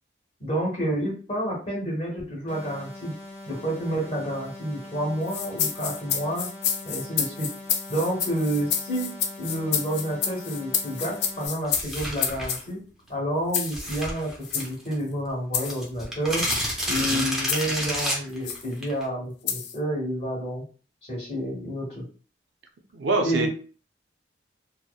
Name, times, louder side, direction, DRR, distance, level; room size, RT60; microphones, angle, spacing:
voice 1, 0.4-3.1 3.4-6.5 6.8-7.5 7.9-9.1 9.4-12.8 13.1-16.4 16.9-20.6 21.1-22.0 23.2-23.5, right 1 dB, 30° left, -3 dB, 1.0 m, -29 dB
sound 1, 2.5-11.5, left 1 dB, 85° left, 0.8 m, -42 dB
sound 2, 5.3-12.6 13.5-13.8 14.4-14.7 15.5-15.8 16.4-16.7 17.5-17.8 18.5-18.7 19.5-19.8, left 8 dB, 60° left, 0.3 m, -29 dB
sound 3, 11.6-12.6 13.6-14.9 15.3-15.4 15.5-19.0, equal, ahead, 0.5 m, -30 dB
voice 2, 17.0-17.3 22.9-23.5, right 3 dB, 70° right, 4 dB, 0.4 m, -26 dB
2.8 x 2.0 x 2.2 m, 0.39 s
head